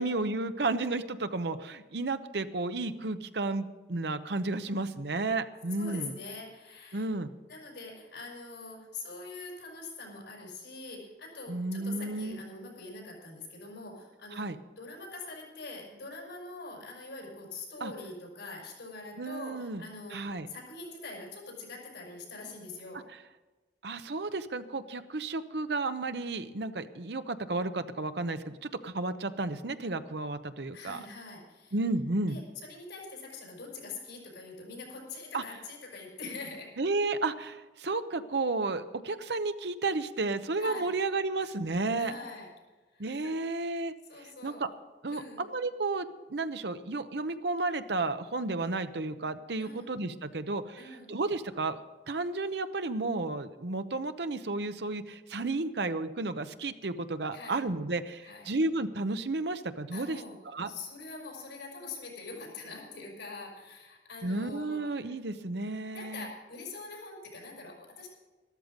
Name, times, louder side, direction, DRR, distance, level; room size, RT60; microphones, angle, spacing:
voice 1, 0.0-6.1 6.9-7.3 11.5-12.4 14.3-14.6 17.8-17.9 19.2-19.8 20.1-20.5 23.8-31.0 31.7-32.4 35.3-35.4 36.8-42.1 43.0-43.9 44.2-44.7 45.0-51.8 52.1-60.2 60.5-60.7 64.2-66.2, right 3 dB, 75° right, 10 dB, 0.8 m, -32 dB
voice 2, 5.8-7.1 7.5-14.5 14.8-23.0 30.7-31.8 32.3-36.7 40.5-40.9 42.0-42.5 42.9-43.3 44.0-44.6 45.1-45.4 49.6-49.9 50.8-51.1 57.3-57.6 58.2-58.5 59.9-60.4 60.7-65.1 65.9-68.1, left 3 dB, 90° left, -2 dB, 5.9 m, -44 dB
13.0 x 13.0 x 5.3 m, 1.2 s
head